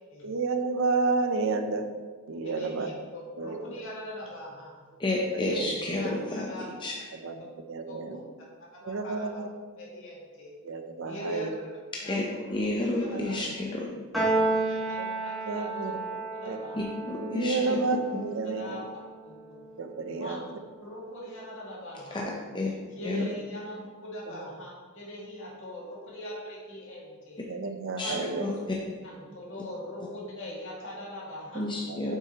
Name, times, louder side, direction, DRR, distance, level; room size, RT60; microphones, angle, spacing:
voice 1, 0.2-1.9 2.3-2.9 3.4-3.6 5.4-5.7 7.2-8.2 8.9-9.5 10.6-11.5 13.1-13.4 15.0-15.1 15.5-16.0 16.4-16.6 17.2-18.9 19.8-20.4 23.0-23.3 24.3-24.4 27.5-28.4 31.9-32.2, right 3 dB, 60° right, 7 dB, 0.5 m, -31 dB
voice 2, 2.4-4.9 5.4-6.7 7.9-8.3 8.7-9.4 9.8-10.5 11.0-11.7 12.0-13.5 14.6-16.9 17.5-17.8 18.4-18.8 19.2-19.6 20.1-20.5 20.8-22.3 23.0-27.4 28.0-28.4 29.0-31.7, left 1 dB, 60° left, -5 dB, 2.0 m, -42 dB
voice 3, 5.0-6.5 6.8-6.9 11.9-12.2 12.5-13.9 16.7-18.2 22.1-22.2 22.5-22.7 23.0-23.2 28.0-28.8 31.5-32.2, left 2 dB, 20° left, -1 dB, 0.6 m, -31 dB
Piano, 14.1-20.6, right 2 dB, ahead, 1.8 m, -33 dB
7.5 x 6.0 x 2.9 m, 1.5 s
head